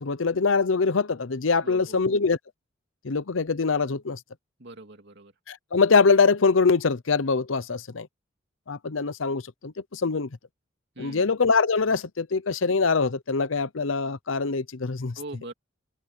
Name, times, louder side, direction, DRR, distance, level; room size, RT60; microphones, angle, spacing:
voice 1, 0.0-2.4 3.0-4.2 5.5-8.1 8.7-10.3 11.0-15.1, left 4 dB, 75° left, 0.8 m, -23 dB
voice 2, 1.6-2.2 4.6-5.3 10.9-11.3 15.2-15.5, right 2 dB, 60° right, 2.7 m, -42 dB
head